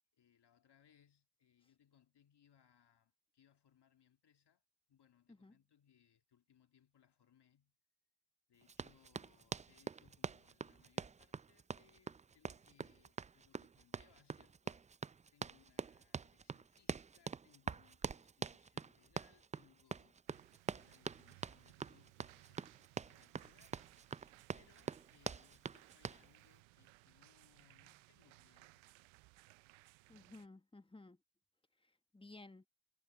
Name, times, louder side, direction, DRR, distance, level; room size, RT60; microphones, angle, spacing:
voice 1, 0.1-4.6 4.9-7.8 8.5-20.5 20.7-24.1 24.5-29.0, left 9 dB, 60° left, 2.3 m, -72 dB
Run, 8.7-26.3, right 5 dB, 15° right, 0.3 m, -45 dB
sound 1, 20.3-30.5, right 22 dB, 85° right, 0.5 m, -64 dB
voice 2, 30.1-31.2 31.8-32.7, left 2 dB, 10° left, 1.4 m, -57 dB
supercardioid pair, 50°, 46 cm